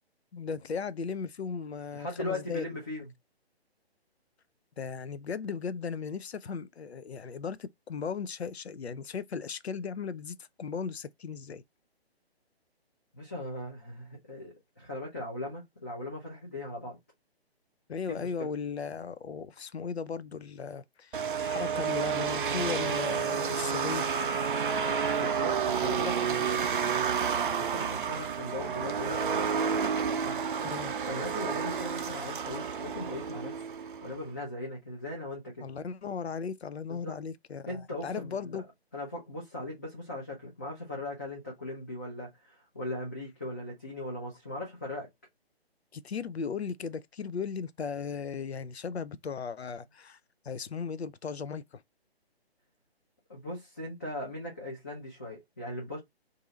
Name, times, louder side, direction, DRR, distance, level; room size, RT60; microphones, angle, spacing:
voice 1, 0.3-2.7 4.8-11.6 17.9-24.1 30.6-30.9 35.6-38.6 45.9-50.2 50.4-51.8, left 5 dB, 80° left, 0.5 m, -37 dB
voice 2, 1.9-3.1 13.1-17.0 18.1-18.5 25.1-26.7 27.5-29.5 30.2-30.4 31.1-33.6 34.0-35.7 36.9-37.2 37.7-38.6 38.9-45.1 53.3-56.0, left 1 dB, 15° left, 0.4 m, -39 dB
sound 1, 21.1-34.2, right 6 dB, 55° right, 0.5 m, -30 dB
2.7 x 2.5 x 4.0 m
figure-of-eight pair, 140°, 32 cm